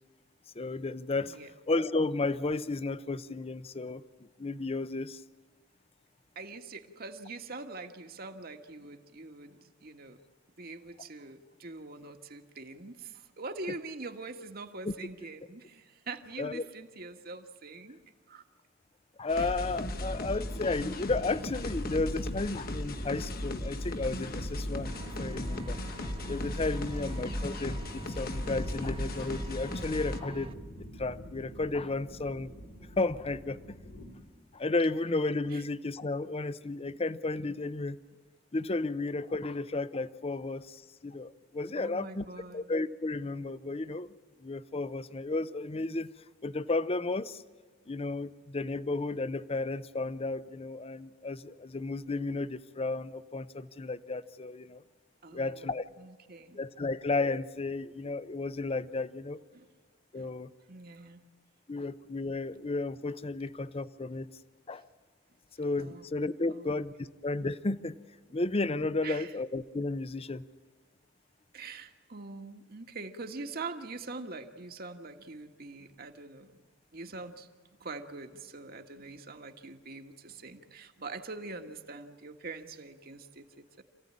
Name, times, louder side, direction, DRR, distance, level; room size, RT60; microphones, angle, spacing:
voice 1, 0.5-1.4 1.7-4.0 4.4-5.2 14.8-14.9 16.4-16.6 19.2-25.8 26.3-30.6 31.0-32.5 33.0-33.6 34.5-38.0 38.5-42.2 42.5-44.1 44.4-46.1 46.4-47.4 47.9-54.8 55.3-55.8 56.5-59.4 60.1-60.5 61.7-64.4 64.7-64.8 65.6-68.0 68.3-70.5, left 3 dB, 30° left, 15 dB, 0.7 m, -33 dB
voice 2, 6.3-10.2 10.6-18.0 18.3-18.4 19.3-19.6 27.0-27.4 35.5-35.6 41.7-42.7 55.2-55.7 56.0-56.6 59.5-59.7 60.1-60.3 60.7-61.2 65.8-66.2 66.5-66.8 69.0-69.3 71.5-76.6 76.9-77.5 77.8-83.8, right 3 dB, 50° right, 5 dB, 1.6 m, -44 dB
sound 1, 19.3-30.2, left 1 dB, 50° left, 1.4 m, -36 dB
sound 2, 19.6-34.1, equal, 85° left, 6.2 m, -45 dB
Vehicle, 24.8-30.5, right 2 dB, 30° right, 1.1 m, -47 dB
27.5 x 16.0 x 9.8 m, 1.5 s
head